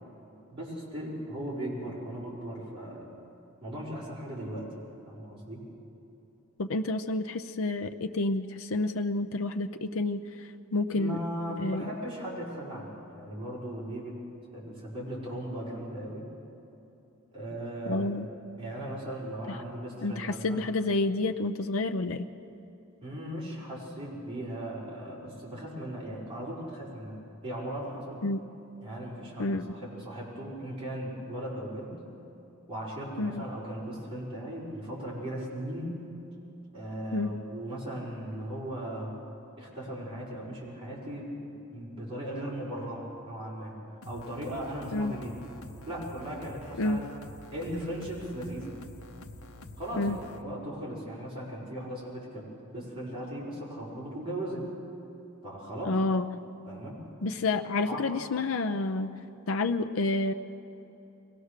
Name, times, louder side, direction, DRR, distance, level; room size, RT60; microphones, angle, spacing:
voice 1, 0.5-3.1 3.6-5.6 10.9-14.2 14.5-16.3 17.3-18.1 18.6-20.6 23.0-27.2 27.4-28.2 28.8-32.0 32.7-36.1 36.7-39.1 39.6-43.7 44.0-45.4 45.9-47.1 47.5-48.7 49.8-54.7 55.4-56.0 56.7-57.1 57.9-58.1, right 1 dB, 25° right, -6 dB, 5.2 m, -38 dB
voice 2, 6.6-11.2 11.6-11.8 17.9-18.3 20.0-22.2 28.2-28.4 29.4-29.6 33.2-33.4 37.1-37.3 44.9-45.1 46.8-47.0 50.0-50.2 55.8-56.3 57.2-59.1 59.5-60.3, left 2 dB, 70° left, 7 dB, 0.6 m, -29 dB
sound 1, 44.0-50.4, left 1 dB, 90° left, 1.1 m, -47 dB
23.0 x 18.0 x 6.6 m, 3.0 s
head